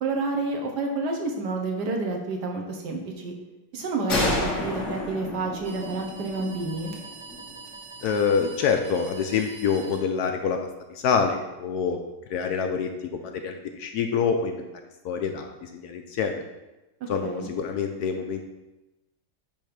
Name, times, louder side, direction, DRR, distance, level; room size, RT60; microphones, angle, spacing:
voice 1, 0.0-3.3 3.7-6.9 17.2-17.5, right 3 dB, 70° right, 2 dB, 1.5 m, -29 dB
sound 1, 4.1-7.6, left 2 dB, 45° left, 1.5 m, -30 dB
sound 2, 5.6-10.6, right 4 dB, 85° right, 1.5 m, -45 dB
voice 2, 8.0-10.6 10.9-12.0 12.3-14.6 15.0-16.5 17.1-18.4, left 6 dB, 70° left, 5 dB, 1.0 m, -26 dB
8.9 x 3.1 x 5.1 m, 1.0 s
omnidirectional pair, 2.0 m